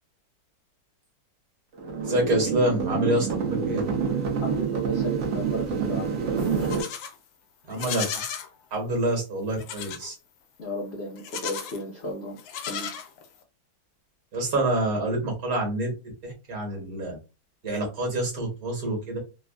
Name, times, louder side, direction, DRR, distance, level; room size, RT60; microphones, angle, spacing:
sound 1, 1.8-6.8, right 5 dB, 75° right, 0.6 m, -27 dB
voice 1, 2.0-3.8 7.7-8.1 8.7-10.1 14.3-15.9 16.2-17.2 17.6-19.2, right 1 dB, 55° right, 0 dB, 1.4 m, -27 dB
voice 2, 4.4-6.3 10.6-12.4 12.7-12.9, right 1 dB, 60° left, -2 dB, 0.7 m, -34 dB
Livestock farm animals working animals, 6.4-7.2 7.7-8.5 9.6-10.1 11.2-11.8 12.4-13.4, left 8 dB, 80° left, 1.3 m, -35 dB
3.4 x 2.2 x 2.3 m, 0.28 s
omnidirectional pair, 2.1 m